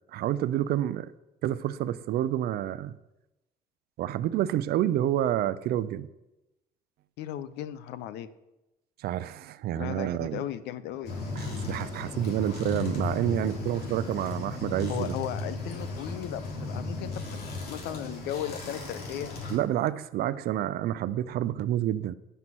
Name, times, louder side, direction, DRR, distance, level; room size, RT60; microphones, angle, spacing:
voice 1, 0.1-1.1 1.4-2.9 4.0-6.1 9.0-10.4 11.4-15.1 19.5-22.2, right 12 dB, 70° right, 16 dB, 0.5 m, -29 dB
voice 2, 7.2-8.3 9.7-11.1 14.9-19.3, left 11 dB, 85° left, 14 dB, 0.7 m, -36 dB
sound 1, 11.0-19.6, left 3 dB, 65° left, 3.1 m, -35 dB
11.0 x 5.6 x 6.1 m, 0.98 s
cardioid pair, 110°, 17 cm